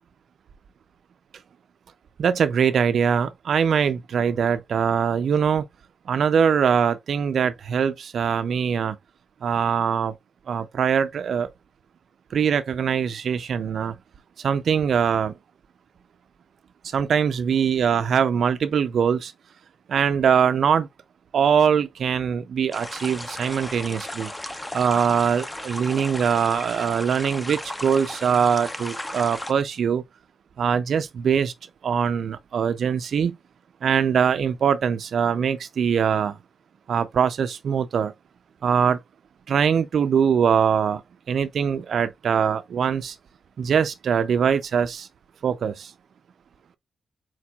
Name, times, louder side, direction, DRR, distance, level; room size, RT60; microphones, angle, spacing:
voice 1, 2.2-5.6 6.1-9.0 9.4-10.1 10.5-11.5 12.3-13.9 14.4-15.3 16.8-19.3 19.9-20.9 21.3-24.3 24.7-30.0 30.6-31.5 31.8-33.3 33.8-36.4 36.9-38.1 38.6-39.0 39.5-41.0 41.3-43.2 43.6-45.1 45.4-45.9, right 7 dB, 65° right, 0.4 m, -22 dB
sound 1, 22.7-29.5, left 1 dB, 10° left, 0.6 m, -35 dB
4.5 x 4.3 x 2.3 m
wide cardioid pair, 135°, 0 cm